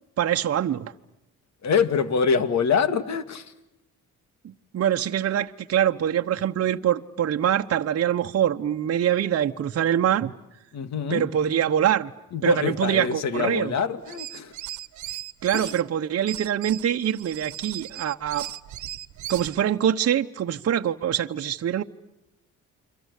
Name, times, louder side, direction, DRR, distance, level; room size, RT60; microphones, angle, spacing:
voice 1, 0.2-0.9 4.4-10.3 11.1-12.1 12.4-13.7 15.4-18.5 19.3-21.8, right 10 dB, 55° right, 1.0 m, -24 dB
voice 2, 1.6-3.5 10.7-11.3 12.3-14.5 15.5-15.7, left 6 dB, 65° left, 2.2 m, -25 dB
sound 1, 14.0-15.8 16.3-19.6, right 13 dB, 75° right, 1.3 m, -37 dB
29.5 x 24.0 x 8.3 m
cardioid pair, 90°, 30 cm